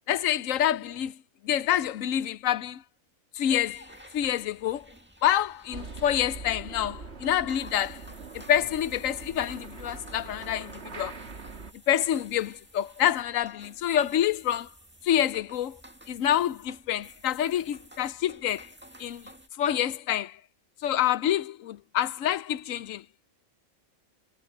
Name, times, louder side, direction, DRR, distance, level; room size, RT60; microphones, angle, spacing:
voice 1, 0.1-1.2 1.4-2.8 3.3-3.9 4.1-4.9 5.2-8.0 8.3-11.2 11.9-14.7 15.0-15.8 16.1-18.7 19.0-19.2 19.6-20.4 20.8-23.0, left 11 dB, 75° left, 1.1 m, -27 dB
sound 1, 3.4-19.5, equal, 10° right, 2.0 m, -52 dB
sound 2, 5.7-11.7, right 4 dB, 55° right, 1.9 m, -42 dB
omnidirectional pair, 1.4 m